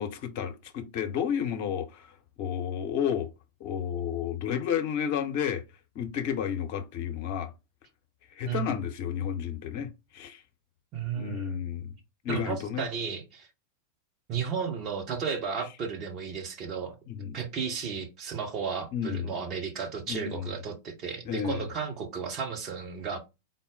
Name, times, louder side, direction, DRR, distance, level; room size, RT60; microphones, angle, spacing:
voice 1, 0.0-2.1 2.4-3.3 3.6-5.6 5.9-7.5 8.3-10.4 11.1-11.9 12.2-12.9 17.1-17.4 18.9-19.3 20.1-20.5 21.3-21.6, left 8 dB, 45° left, 0.8 m, -31 dB
voice 2, 8.5-8.8 10.9-11.6 12.3-13.5 14.3-17.0 17.3-23.2, right 6 dB, 35° right, 1.1 m, -34 dB
3.9 x 2.0 x 3.9 m
figure-of-eight pair, 90°, 0 cm